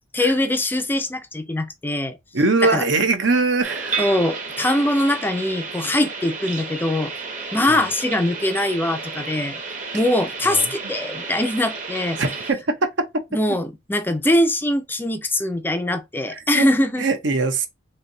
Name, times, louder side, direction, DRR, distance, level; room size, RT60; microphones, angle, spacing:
voice 1, 0.1-2.2 2.6-2.8 4.0-7.1 7.5-9.6 9.9-12.2 13.3-17.0, left 1 dB, 10° left, 0.4 m, -22 dB
voice 2, 2.3-4.0 7.7-7.8 10.4-10.7 12.2-13.1 16.3-16.7 17.0-17.7, right 3 dB, 70° right, 0.8 m, -21 dB
sound 1, 3.6-12.5, right 4 dB, 40° right, 1.0 m, -32 dB
3.2 x 2.7 x 3.9 m
head